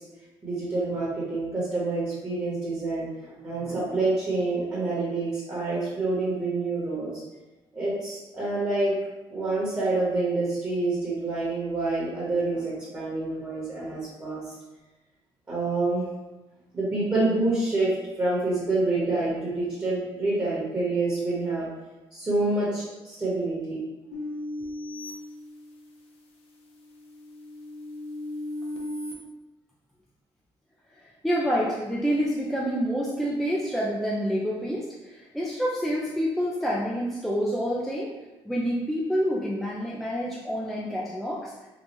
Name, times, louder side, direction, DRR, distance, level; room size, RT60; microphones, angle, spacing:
voice 1, 0.4-7.2 7.7-8.9 9.3-14.5 15.5-16.0 16.7-21.7 22.1-23.8, right 2 dB, 20° right, -8 dB, 1.2 m, -27 dB
sound 1, 24.1-26.1 26.6-29.1, left 1 dB, 75° left, 0.7 m, -37 dB
voice 2, 30.9-38.1 38.5-41.5, equal, ahead, -5 dB, 0.4 m, -28 dB
3.8 x 2.3 x 3.0 m, 1.1 s
cardioid pair, 110°, 10 cm